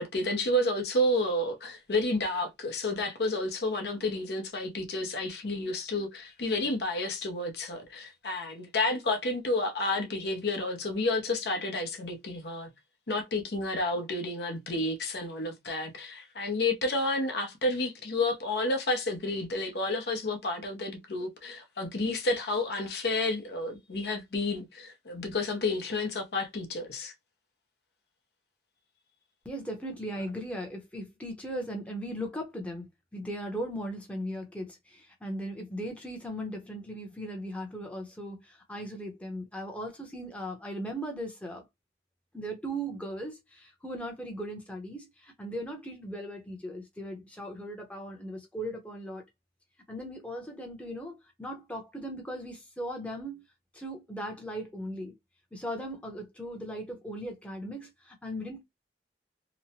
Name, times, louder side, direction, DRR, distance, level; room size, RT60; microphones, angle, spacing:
voice 1, 0.0-12.7 13.1-27.1, left 2 dB, 70° left, 0.7 m, -30 dB
voice 2, 29.4-41.6 42.3-49.2 49.9-53.4 53.7-55.1 55.5-58.6, equal, 5° left, 0.7 m, -38 dB
2.9 x 2.1 x 2.8 m
head